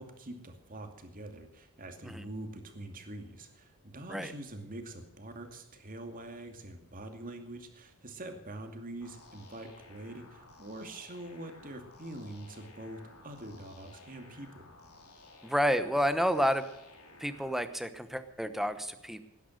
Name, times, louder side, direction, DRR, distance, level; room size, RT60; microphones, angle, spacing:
voice 1, 0.0-14.7, right 1 dB, 40° right, 5 dB, 2.5 m, -44 dB
sound 1, 9.0-17.6, left 3 dB, 85° left, 3.6 m, -55 dB
voice 2, 15.4-16.7 17.2-19.2, equal, ahead, 11 dB, 1.0 m, -30 dB
18.5 x 10.5 x 6.5 m, 0.82 s
head